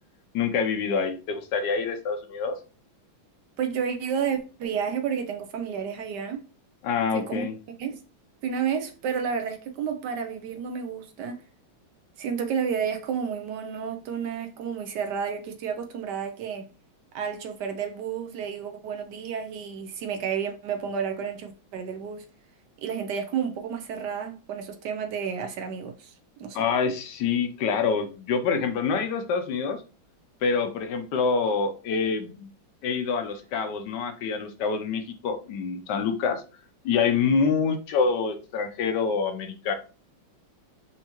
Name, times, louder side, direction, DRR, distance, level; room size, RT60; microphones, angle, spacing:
voice 1, 0.3-2.6 6.8-7.6 26.5-29.8 30.4-32.5 32.8-36.4 36.8-39.7, left 5 dB, 70° left, 1.1 m, -26 dB
voice 2, 3.6-6.4 7.1-7.5 7.8-8.0 8.4-11.4 12.2-16.7 17.1-22.3 22.8-26.1 26.4-26.6, right 7 dB, 70° right, 1.0 m, -31 dB
4.4 x 2.7 x 2.9 m
omnidirectional pair, 2.2 m